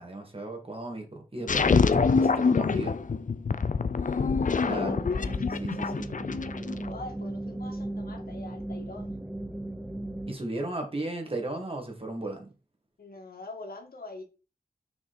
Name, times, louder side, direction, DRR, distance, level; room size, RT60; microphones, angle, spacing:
voice 1, 0.0-3.0 4.6-5.0 5.6-6.1 10.3-12.5, right 2 dB, 40° right, 2.6 m, -36 dB
sound 1, 1.5-6.9, left 5 dB, 60° left, 0.6 m, -25 dB
voice 2, 4.5-5.5 6.8-9.2 13.0-14.2, left 2 dB, 85° left, 2.2 m, -44 dB
sound 2, 4.6-10.4, right 1 dB, 5° right, 1.0 m, -36 dB
6.2 x 5.9 x 4.4 m
wide cardioid pair, 55°, 15 cm